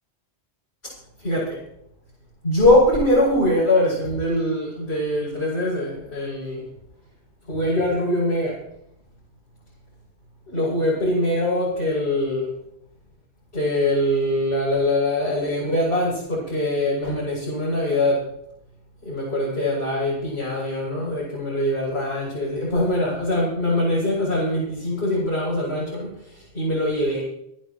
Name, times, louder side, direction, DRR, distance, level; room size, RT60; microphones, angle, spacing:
voice 1, 1.2-1.6 2.4-6.7 7.5-8.6 10.5-12.5 13.5-18.2 19.0-27.2, left 1 dB, 70° left, -9 dB, 7.5 m, -22 dB
29.5 x 11.0 x 3.1 m, 0.75 s
omnidirectional pair, 1.1 m